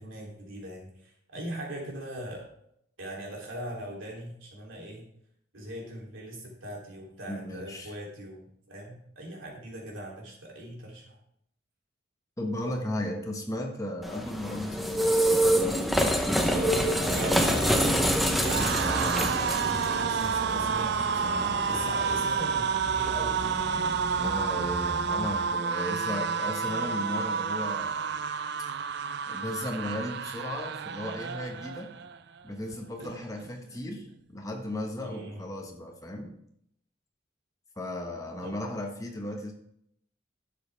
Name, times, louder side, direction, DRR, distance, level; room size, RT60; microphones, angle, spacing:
voice 1, 0.0-2.5 3.0-5.0 5.5-11.2 16.3-19.4 20.0-23.7 35.0-35.4 38.4-38.5, right 1 dB, 75° right, -2 dB, 3.1 m, -40 dB
voice 2, 7.3-7.9 12.4-15.2 18.3-19.3 24.2-28.1 29.3-31.9 32.4-36.3 37.8-39.5, left 1 dB, 15° left, 2 dB, 1.3 m, -35 dB
sound 1, 14.0-25.5, equal, ahead, 0.8 m, -28 dB
sound 2, 17.1-32.2 32.5-32.8 33.0-33.8, right 6 dB, 55° right, 0.4 m, -30 dB
11.5 x 7.4 x 3.4 m, 0.72 s
head